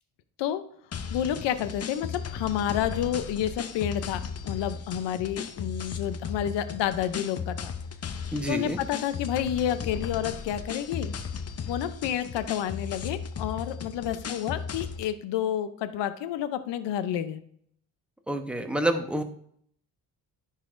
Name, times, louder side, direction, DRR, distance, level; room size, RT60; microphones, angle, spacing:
sound 1, 0.9-15.1, left 6 dB, 35° left, 0.6 m, -36 dB
voice 1, 1.1-7.7 8.5-11.1 11.7-17.4, left 10 dB, 80° left, 11 dB, 0.7 m, -30 dB
voice 2, 8.3-8.8 18.3-19.2, right 1 dB, 5° right, 5 dB, 0.9 m, -28 dB
10.5 x 4.1 x 2.6 m, 0.63 s
cardioid pair, 85°, 42 cm